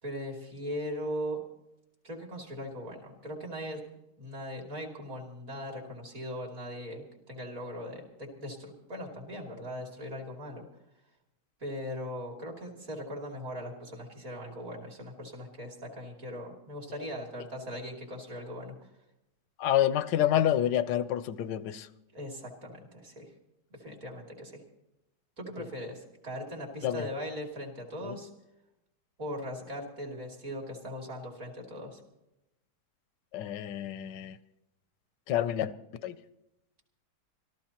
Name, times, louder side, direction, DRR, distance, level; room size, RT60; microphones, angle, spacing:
voice 1, 0.0-1.4 2.0-3.8 4.2-10.7 11.6-18.7 22.1-23.3 23.7-24.6 25.4-28.3 29.2-32.0, equal, 50° right, 3.1 m, -39 dB
voice 2, 19.6-21.9 26.8-27.0 28.0-28.2 33.3-34.4 35.3-36.2, left 11 dB, 85° left, 1.3 m, -28 dB
25.5 x 14.5 x 2.9 m
omnidirectional pair, 1.8 m